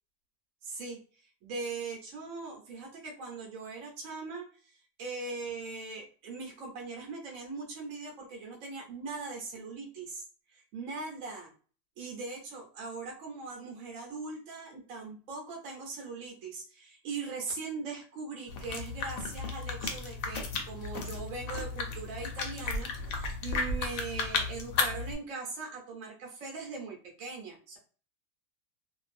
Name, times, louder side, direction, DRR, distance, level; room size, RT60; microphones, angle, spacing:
voice 1, 0.6-11.5 12.0-27.8, right 4 dB, 60° right, 0 dB, 1.1 m, -40 dB
sound 1, 18.5-25.1, left 4 dB, 70° left, 0.9 m, -34 dB
2.5 x 2.3 x 2.5 m, 0.40 s
omnidirectional pair, 1.6 m